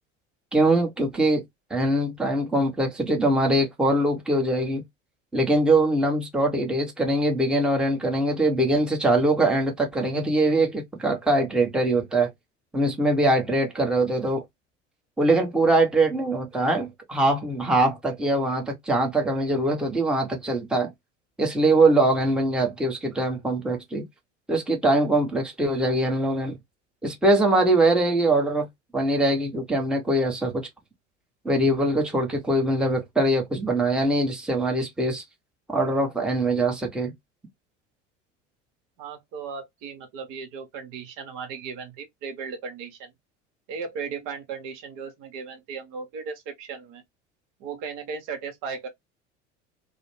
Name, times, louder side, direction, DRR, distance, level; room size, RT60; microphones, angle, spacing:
voice 1, 0.5-1.4 1.7-4.8 5.3-12.3 12.7-14.4 15.2-20.9 21.4-24.0 24.5-26.6 27.0-28.7 28.9-30.7 31.4-35.2 35.7-37.1, right 2 dB, ahead, 0.8 m, -22 dB
voice 2, 39.0-43.1 43.7-47.0 47.6-48.9, right 5 dB, 55° right, 1.0 m, -36 dB
2.4 x 2.1 x 3.0 m
hypercardioid pair, 75°, 36 cm